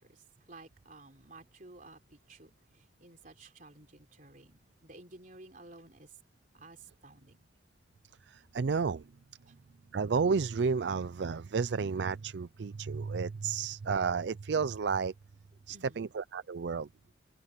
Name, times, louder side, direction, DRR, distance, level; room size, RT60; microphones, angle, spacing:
voice 1, 0.5-2.5 3.0-6.1 6.5-6.8 7.0-7.4 15.7-16.1, right 2 dB, 45° right, 3.6 m, -53 dB
voice 2, 8.3-9.0 9.9-15.1 15.7-16.9, right 5 dB, 70° right, 0.4 m, -31 dB
head